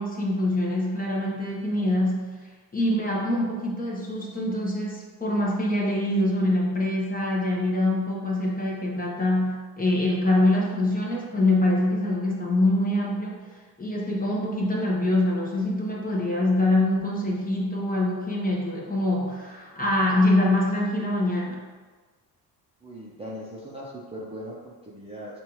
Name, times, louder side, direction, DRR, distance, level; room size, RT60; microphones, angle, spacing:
voice 1, 0.0-2.3 2.7-13.4 13.8-21.6, left 1 dB, 20° left, -3 dB, 1.0 m, -24 dB
voice 2, 22.8-25.4, equal, 15° right, -6 dB, 0.7 m, -39 dB
5.3 x 2.6 x 3.0 m, 1.4 s
supercardioid pair, 75°, 45 cm